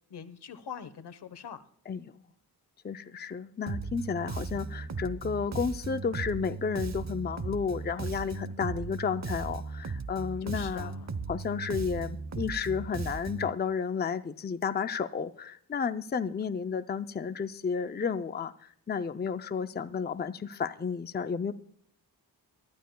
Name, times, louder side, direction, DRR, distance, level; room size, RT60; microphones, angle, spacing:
voice 1, 0.1-1.6 10.4-11.1, left 7 dB, 80° left, 13 dB, 1.1 m, -43 dB
voice 2, 2.8-10.9 11.3-21.5, left 6 dB, 25° left, 10 dB, 0.5 m, -32 dB
Bass guitar, 3.7-13.5, right 4 dB, 40° right, 0.8 m, -37 dB
24.0 x 12.5 x 2.2 m, 0.65 s
wide cardioid pair, 95°, 40 cm